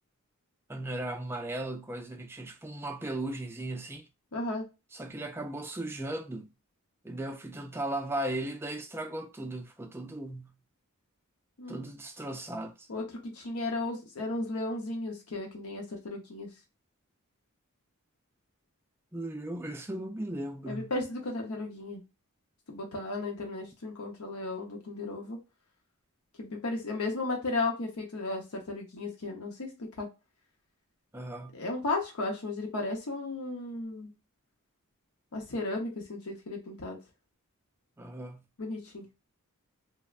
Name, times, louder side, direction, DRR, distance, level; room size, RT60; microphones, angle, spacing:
voice 1, 0.7-4.1 4.9-6.5 7.0-10.6 11.7-12.9 19.1-20.9 31.1-31.6 38.0-38.4, right 1 dB, 10° right, 0.3 m, -37 dB
voice 2, 4.3-4.7 11.6-11.8 12.9-16.5 20.7-22.0 22.7-25.4 26.4-30.1 31.5-34.1 35.3-37.0 38.6-39.1, left 2 dB, 75° left, 0.7 m, -35 dB
3.2 x 2.0 x 2.3 m
head